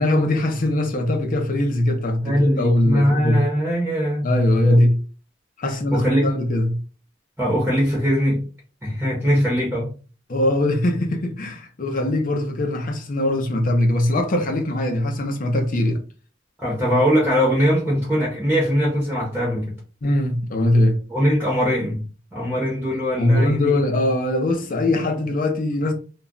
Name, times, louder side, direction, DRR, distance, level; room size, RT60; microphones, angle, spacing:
voice 1, 0.0-3.4 4.2-5.0 5.6-6.8 10.3-16.0 20.0-21.0 23.2-25.9, left 1 dB, 40° left, 0.6 m, -21 dB
voice 2, 2.2-4.3 4.7-4.8 5.9-6.4 7.4-8.4 8.8-9.9 16.6-19.7 21.1-22.0 22.3-23.8, equal, 10° right, 0.7 m, -21 dB
2.3 x 2.1 x 3.7 m
head